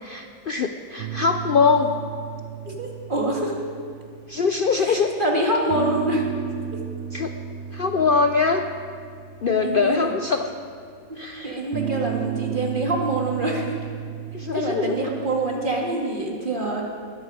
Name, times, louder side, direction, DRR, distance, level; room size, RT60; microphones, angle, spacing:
voice 1, 0.0-2.0 4.3-5.1 7.1-7.3 7.7-8.6 9.4-10.5 11.2-11.6 14.3-15.0, left 5 dB, 50° left, 6 dB, 0.7 m, -22 dB
sound 1, 1.0-4.9 5.7-10.8 11.7-15.9, right 9 dB, 65° right, 0.8 m, -34 dB
voice 2, 2.6-3.5 4.8-6.2 6.7-6.8 9.4-10.1 11.1-11.2 11.4-13.7 14.5-16.8, right 1 dB, 35° right, -1 dB, 2.5 m, -25 dB
20.0 x 14.0 x 5.0 m, 2.2 s
omnidirectional pair, 1.4 m